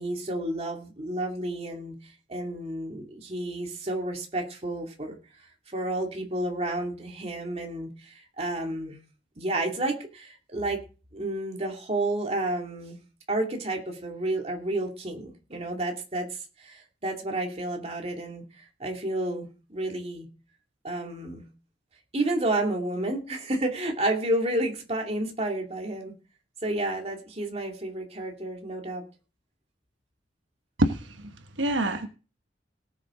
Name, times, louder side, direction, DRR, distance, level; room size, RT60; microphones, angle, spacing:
voice 1, 0.0-2.0 2.3-5.2 5.7-9.0 9.4-10.8 11.1-13.0 13.3-20.3 20.8-21.5 22.1-26.2 26.6-29.0, right 1 dB, 35° right, 2 dB, 2.5 m, -31 dB
voice 2, 30.8-31.3 31.6-32.1, right 1 dB, 85° right, 7 dB, 1.2 m, -26 dB
18.5 x 7.5 x 3.8 m, 0.35 s
head